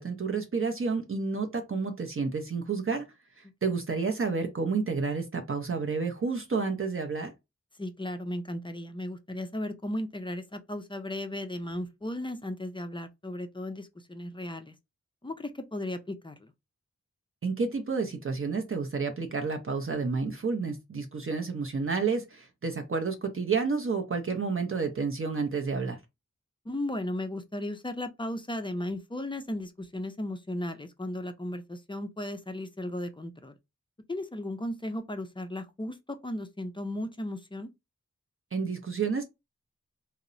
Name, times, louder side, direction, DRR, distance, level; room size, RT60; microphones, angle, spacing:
voice 1, 0.0-3.1 3.4-7.3 17.4-26.0 38.5-39.2, right 4 dB, 45° right, 0.5 m, -30 dB
voice 2, 7.8-14.7 15.2-16.5 26.7-33.5 34.1-36.0 36.2-37.7, left 1 dB, 15° left, 0.4 m, -35 dB
2.8 x 2.0 x 2.5 m
wide cardioid pair, 70°, 30 cm